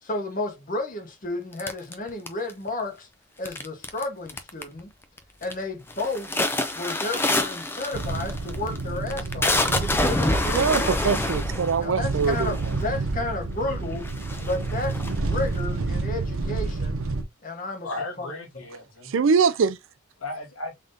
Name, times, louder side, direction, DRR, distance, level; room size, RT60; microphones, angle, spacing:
voice 1, 0.0-3.1 3.4-4.9 5.4-6.4 6.7-11.0 11.8-14.1 14.4-17.0 17.4-17.9 18.2-18.3, left 2 dB, 40° left, 1.2 m, -32 dB
sound 1, 1.6-2.7 3.5-4.0 4.3-4.8 5.2-5.6 5.9-13.0 13.6-13.7 14.0-15.6, left 2 dB, 10° left, 0.4 m, -27 dB
sound 2, 7.9-17.2, right 3 dB, 85° right, 0.8 m, -29 dB
voice 2, 10.5-12.6 19.1-19.8, right 5 dB, 65° right, 0.4 m, -23 dB
voice 3, 17.8-19.1 20.2-20.7, left 2 dB, 90° left, 1.7 m, -35 dB
3.7 x 3.6 x 2.6 m
head